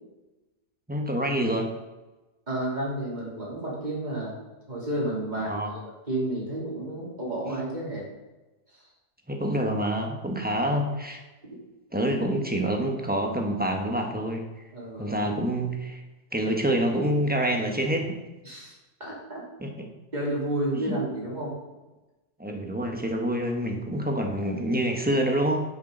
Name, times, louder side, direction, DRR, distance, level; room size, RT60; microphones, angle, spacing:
voice 1, 0.9-1.7 5.5-5.7 9.3-11.2 11.9-14.4 15.0-16.0 16.3-18.0 19.6-19.9 20.9-21.0 22.4-25.6, right 1 dB, 5° right, 2 dB, 1.1 m, -27 dB
voice 2, 2.5-4.4 4.7-5.8 6.1-8.1 8.7-8.8 14.7-15.1 18.4-18.7 19.0-19.4 20.1-21.6, right 1 dB, 25° right, -5 dB, 3.2 m, -31 dB
10.5 x 7.4 x 3.9 m, 1.1 s
omnidirectional pair, 1.7 m